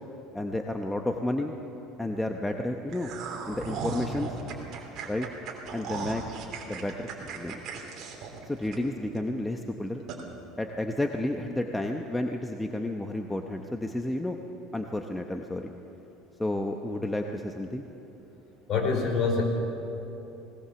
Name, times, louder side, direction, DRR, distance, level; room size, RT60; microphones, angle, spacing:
voice 1, 0.3-1.5 2.0-3.1 3.5-4.4 5.1-5.3 5.7-6.2 6.7-7.6 8.5-10.0 10.6-14.4 14.7-15.7 16.4-17.9, left 1 dB, 5° left, 3 dB, 0.9 m, -31 dB
sound 1, 2.9-9.2 9.5-9.6 10.1-10.2, right 5 dB, 45° right, 3.3 m, -37 dB
voice 2, 18.7-19.4, left 4 dB, 40° left, 1 dB, 4.4 m, -25 dB
20.0 x 19.0 x 7.0 m, 3.0 s
cardioid pair, 140°, 0 cm